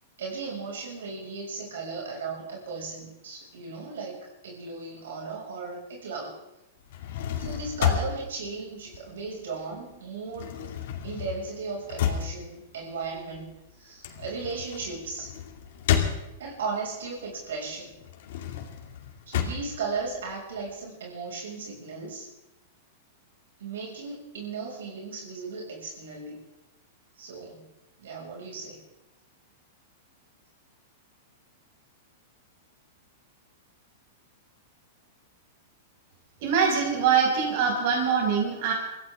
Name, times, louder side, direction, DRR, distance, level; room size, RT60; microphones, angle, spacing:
voice 1, 0.2-6.4 7.4-10.5 11.0-13.5 13.8-15.3 16.4-17.9 19.3-22.3 23.6-26.4 27.2-27.6 28.0-28.8, right 4 dB, 80° right, -2 dB, 6.3 m, -36 dB
sound 1, 6.8-9.6 9.9-16.7 17.2-20.7, left 9 dB, 65° left, 2.5 m, -31 dB
voice 2, 36.4-38.7, right 6 dB, 55° right, -1 dB, 6.1 m, -23 dB
24.5 x 16.0 x 3.7 m, 0.91 s
hypercardioid pair, 135°, 0 cm